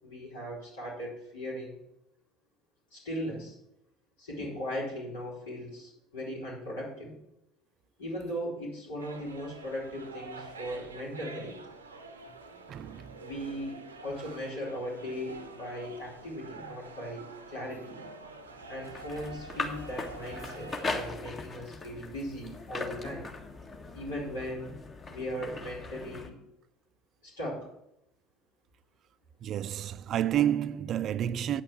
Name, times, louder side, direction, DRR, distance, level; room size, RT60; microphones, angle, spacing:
voice 1, 0.0-1.8 2.9-3.6 4.2-7.1 8.0-11.5 13.2-13.8 14.0-18.0 18.7-23.3 23.9-24.7 25.1-26.4 27.2-27.7, equal, 75° left, 4.6 m, -38 dB
sound 1, 9.0-21.1, right 3 dB, 85° right, 0.7 m, -47 dB
voice 2, 12.5-13.2 29.4-31.6, right 11 dB, 45° right, 0.3 m, -30 dB
sound 2, 18.5-26.3, left 3 dB, 30° left, 1.5 m, -39 dB
8.9 x 5.6 x 7.5 m
figure-of-eight pair, 65°, 0 cm